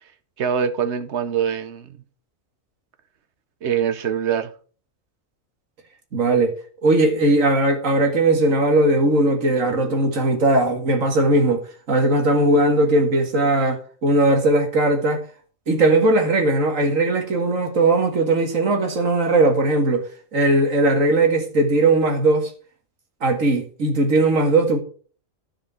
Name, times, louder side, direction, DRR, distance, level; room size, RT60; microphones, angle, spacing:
voice 1, 0.4-1.9 3.6-4.5, right 8 dB, 60° right, 1.1 m, -23 dB
voice 2, 6.1-6.5 6.8-15.2 15.7-22.5 23.2-24.8, right 2 dB, 75° right, 2.3 m, -19 dB
13.0 x 5.1 x 5.7 m
omnidirectional pair, 1.4 m